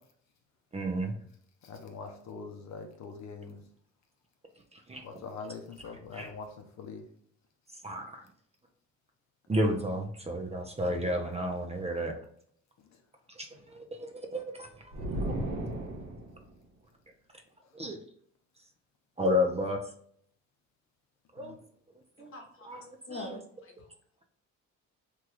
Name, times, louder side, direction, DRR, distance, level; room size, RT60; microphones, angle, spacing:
voice 1, 0.7-1.1 4.7-5.0 6.1-6.3 7.8-8.2 9.5-12.2 13.4-14.8 15.2-15.3 17.7-18.0 19.2-19.8 21.3-21.6 22.2-22.3 22.7-23.4, left 1 dB, 20° right, 3 dB, 0.5 m, -32 dB
voice 2, 1.6-3.6 5.0-7.1 12.8-13.0 17.7-17.8 21.4-21.6, left 4 dB, 65° left, 4 dB, 0.7 m, -43 dB
sound 1, 14.9-16.5, right 1 dB, 75° right, 1.1 m, -34 dB
voice 3, 22.3-23.9, left 2 dB, 45° left, 2 dB, 1.1 m, -44 dB
3.0 x 2.3 x 3.2 m, 0.62 s
cardioid pair, 90°, 30 cm